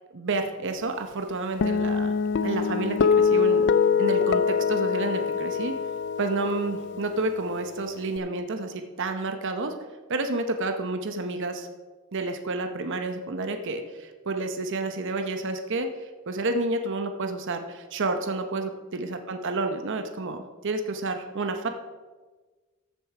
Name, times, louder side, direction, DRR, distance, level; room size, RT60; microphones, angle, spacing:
voice 1, 0.1-2.1 2.4-3.7 4.0-5.8 6.2-9.7 10.1-11.7 12.1-21.7, right 2 dB, 60° right, 7 dB, 0.8 m, -30 dB
Guitar, 1.6-8.2, left 6 dB, 55° left, 0.4 m, -24 dB
14.0 x 6.5 x 4.8 m, 1.3 s
head